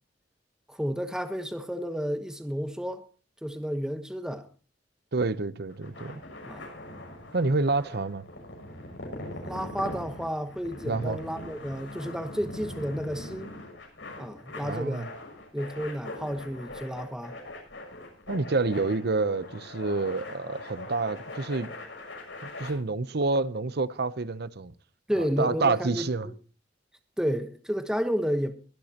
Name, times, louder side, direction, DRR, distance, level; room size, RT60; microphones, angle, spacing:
voice 1, 0.7-3.1 3.4-4.5 6.4-6.7 9.1-13.5 14.2-15.1 15.5-17.3 25.1-26.3 27.2-28.5, equal, 5° right, 1.1 m, -31 dB
voice 2, 5.1-6.2 7.3-8.3 10.9-11.2 14.6-15.1 18.3-21.7 22.4-24.7 25.2-26.3, right 3 dB, 60° right, 0.8 m, -28 dB
sound 1, 5.7-22.7, left 1 dB, 80° left, 6.3 m, -42 dB
23.0 x 11.5 x 2.9 m
head